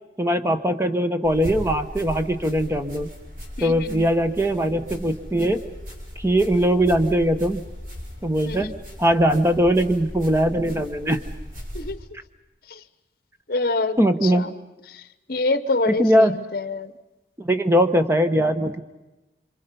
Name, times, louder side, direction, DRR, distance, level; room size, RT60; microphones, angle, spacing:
voice 1, 0.2-3.1 3.6-5.6 6.2-7.7 8.2-8.7 9.0-11.2 14.0-14.5 15.9-16.3 17.4-18.8, equal, 15° right, 8 dB, 1.1 m, -20 dB
sound 1, 1.2-11.9, equal, 50° right, 5.4 m, -37 dB
voice 2, 3.6-4.1 8.5-8.7 11.7-12.0 12.7-12.8 13.5-14.5 14.9-16.9, left 2 dB, 55° left, 13 dB, 1.0 m, -27 dB
28.0 x 26.5 x 5.5 m, 1.0 s
head